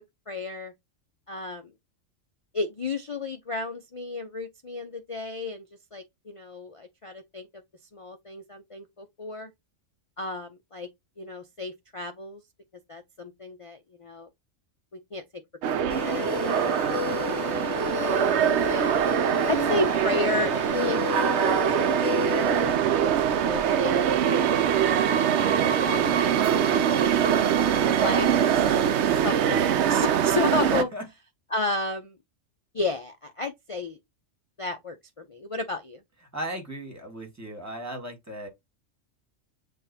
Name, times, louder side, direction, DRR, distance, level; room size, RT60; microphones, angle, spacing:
voice 1, 0.3-0.7 1.3-1.7 2.5-5.7 5.9-7.5 7.9-9.5 10.2-10.9 11.2-12.4 12.9-14.3 15.1-17.5 17.8-18.9 19.5-24.9 25.3-25.5 25.8-26.2 26.5-27.1 27.9-28.8 29.2-30.9 31.5-32.2 32.7-34.0 34.6-36.0, left 3 dB, 50° left, 0.4 m, -33 dB
sound 1, 15.6-30.8, right 9 dB, 70° right, 0.8 m, -23 dB
sound 2, 15.9-22.8, left 6 dB, 75° left, 1.0 m, -32 dB
voice 2, 30.7-31.1 36.3-38.5, right 1 dB, 15° right, 1.5 m, -36 dB
7.6 x 2.5 x 2.7 m
omnidirectional pair, 1.3 m